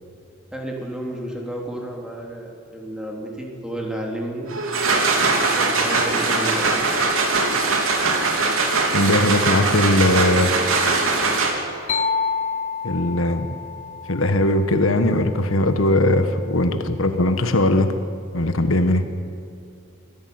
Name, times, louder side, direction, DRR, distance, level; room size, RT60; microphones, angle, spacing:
voice 1, 0.5-4.5 5.3-6.8, right 1 dB, 5° right, -1 dB, 3.5 m, -31 dB
sound 1, 4.5-11.8, right 3 dB, 85° right, 3.3 m, -21 dB
voice 2, 8.9-10.5 12.8-13.5 14.1-17.9 18.3-19.0, left 1 dB, 85° left, 8 dB, 1.5 m, -19 dB
sound 2, 11.9-15.6, left 5 dB, 40° left, 1.2 m, -28 dB
24.5 x 16.0 x 9.6 m, 2.3 s
head